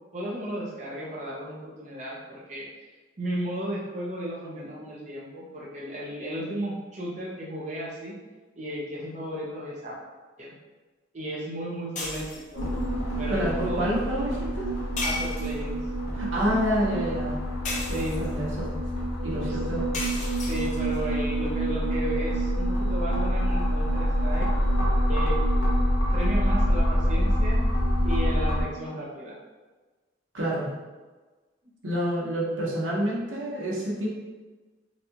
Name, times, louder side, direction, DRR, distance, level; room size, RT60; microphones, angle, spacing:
voice 1, 0.1-2.2 2.5-2.8 3.2-8.1 8.6-10.0 10.4-10.6 11.1-12.6 13.2-13.9 15.0-15.8 17.8-18.2 19.4-19.6 20.4-24.5 25.1-25.4 26.1-27.6 28.0-29.3, right 1 dB, 40° right, -5 dB, 0.6 m, -34 dB
sound 1, 12.0-12.6 15.0-15.8 17.6-18.4 19.9-21.0, left 2 dB, 40° left, 0.5 m, -34 dB
sound 2, 12.5-28.6, equal, 80° left, 1.0 m, -26 dB
voice 2, 13.3-14.7 16.1-17.3 17.9-18.7 19.2-19.9 30.3-30.7 31.8-34.1, equal, 85° right, -5 dB, 1.0 m, -28 dB
4.0 x 2.3 x 2.8 m, 1.3 s
head